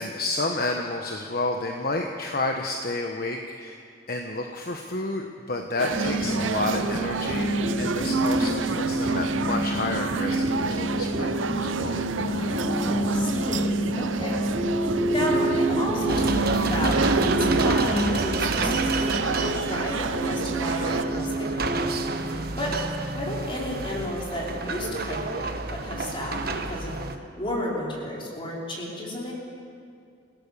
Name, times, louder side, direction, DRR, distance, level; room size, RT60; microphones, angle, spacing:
voice 1, 0.0-7.5 7.8-12.0 20.8-21.0, left 2 dB, 50° left, 3 dB, 1.2 m, -30 dB
sound 1, 5.8-21.0, right 5 dB, 80° right, 0.7 m, -30 dB
sound 2, 5.9-22.4, right 1 dB, 35° right, 4.7 m, -28 dB
voice 2, 12.3-22.8 23.1-29.3, left 1 dB, 25° left, -4 dB, 5.0 m, -32 dB
sound 3, 16.1-27.2, right 3 dB, 50° right, 1.2 m, -30 dB
27.5 x 17.0 x 6.9 m, 2.4 s
head